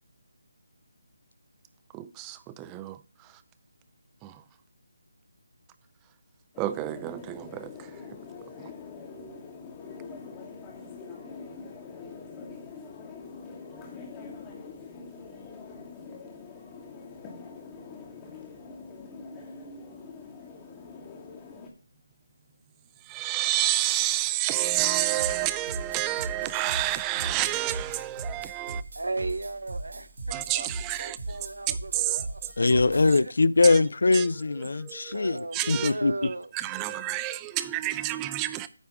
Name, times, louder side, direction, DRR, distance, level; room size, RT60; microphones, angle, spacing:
voice 1, 1.9-3.4 4.2-4.4 6.6-7.9 8.6-8.7 23.0-28.8 30.3-31.4 31.7-32.2 33.6-33.8 34.1-34.3 34.6-35.9 36.5-38.7, right 15 dB, 15° right, 0.4 m, -29 dB
sound 1, 6.5-21.7, left 4 dB, 15° left, 1.4 m, -44 dB
sound 2, 25.2-33.2, right 2 dB, 65° right, 2.0 m, -39 dB
voice 2, 28.9-30.7 31.0-32.5 32.8-33.3 35.0-36.5, right 2 dB, 85° right, 0.8 m, -36 dB
voice 3, 32.6-36.1, left 3 dB, 70° left, 0.4 m, -22 dB
9.2 x 3.5 x 6.9 m
figure-of-eight pair, 160°, 0 cm